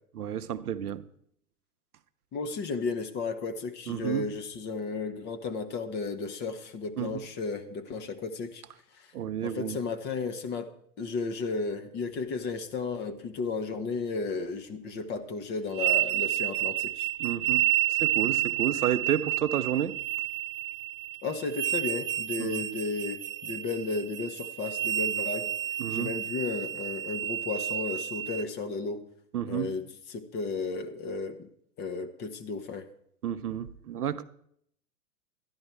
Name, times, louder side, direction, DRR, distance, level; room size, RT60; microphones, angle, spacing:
voice 1, 0.1-1.0 3.9-4.3 7.0-7.3 9.1-9.8 17.2-20.0 22.4-22.6 25.8-26.1 29.3-29.8 33.2-34.2, right 9 dB, 75° right, 0.8 m, -31 dB
voice 2, 2.3-8.6 9.4-10.7 11.0-17.1 21.2-25.5 25.9-29.0 29.5-29.8 30.1-31.5 31.8-32.9, left 4 dB, 25° left, 0.9 m, -34 dB
sound 1, 15.7-28.4, right 14 dB, 40° right, 0.6 m, -30 dB
13.0 x 10.5 x 4.5 m
figure-of-eight pair, 110°, 45 cm